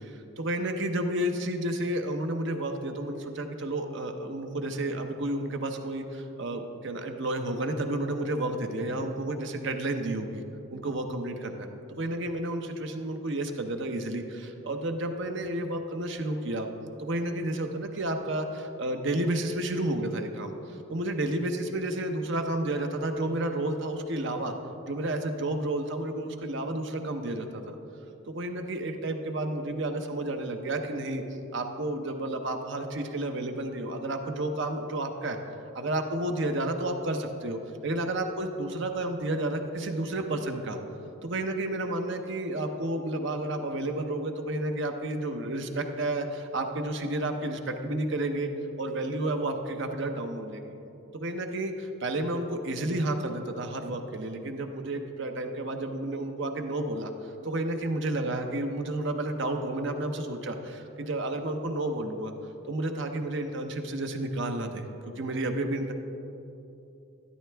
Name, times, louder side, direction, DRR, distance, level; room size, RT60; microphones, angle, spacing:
voice 1, 0.1-10.4 10.7-16.7 17.0-24.5 24.9-27.8 28.3-31.2 31.5-35.4 35.7-40.8 41.2-48.5 48.8-50.7 51.1-62.3 62.7-64.9 65.2-65.9, right 1 dB, 55° right, 5 dB, 0.7 m, -31 dB
12.5 x 11.0 x 3.4 m, 2.8 s
head